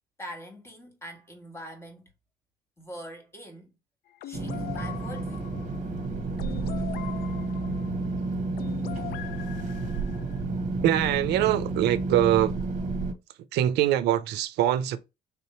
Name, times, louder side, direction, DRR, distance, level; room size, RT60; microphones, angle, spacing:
voice 1, 0.2-2.1 2.8-3.7 4.2-5.5, equal, 15° left, 1.5 m, -43 dB
sound 1, 4.2-10.4, left 11 dB, 65° left, 0.4 m, -42 dB
sound 2, 4.3-13.1, right 3 dB, 50° right, 1.0 m, -31 dB
voice 2, 10.8-12.6 13.5-15.0, right 12 dB, 80° right, 0.5 m, -23 dB
3.6 x 2.9 x 4.3 m
cardioid pair, 110°, 17 cm